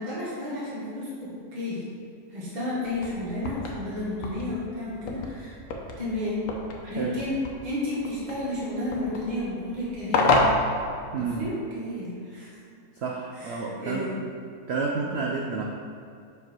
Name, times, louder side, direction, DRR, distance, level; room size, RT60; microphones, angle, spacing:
voice 1, 0.0-1.8 2.3-5.5 6.0-6.4 6.9-10.4 11.2-12.5 13.3-14.2, left 1 dB, 30° right, -8 dB, 1.5 m, -32 dB
sound 1, 2.8-11.6, left 2 dB, 70° left, 1.2 m, -30 dB
voice 2, 6.8-7.2 11.1-11.5 13.0-14.2 14.7-15.6, right 4 dB, 65° right, 0 dB, 0.6 m, -30 dB
5.7 x 5.4 x 4.5 m, 2.4 s
omnidirectional pair, 1.7 m